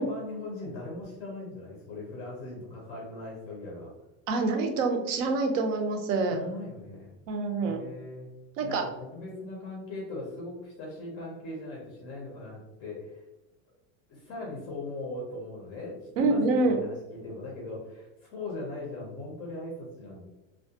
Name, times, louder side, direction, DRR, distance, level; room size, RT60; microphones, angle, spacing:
voice 1, 0.0-3.9 6.3-7.1 7.6-8.3 8.6-13.2 14.1-20.3, left 2 dB, 25° left, -3 dB, 0.4 m, -40 dB
voice 2, 4.3-6.4 7.3-7.8 8.6-8.8 16.2-16.8, right 3 dB, 70° right, 4 dB, 0.6 m, -26 dB
2.3 x 2.2 x 2.7 m, 0.99 s
supercardioid pair, 165°, 40 cm